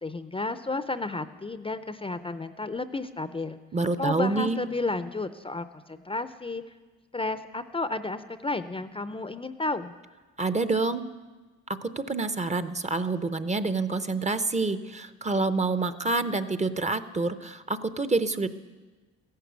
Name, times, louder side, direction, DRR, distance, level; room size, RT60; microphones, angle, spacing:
voice 1, 0.0-3.6 4.0-6.6 7.1-9.9, left 3 dB, 20° left, 11 dB, 0.6 m, -32 dB
voice 2, 3.7-4.6 10.4-11.0 11.8-18.5, right 3 dB, 25° right, 12 dB, 0.7 m, -27 dB
15.0 x 11.5 x 8.1 m, 1.3 s
cardioid pair, 90°, 30 cm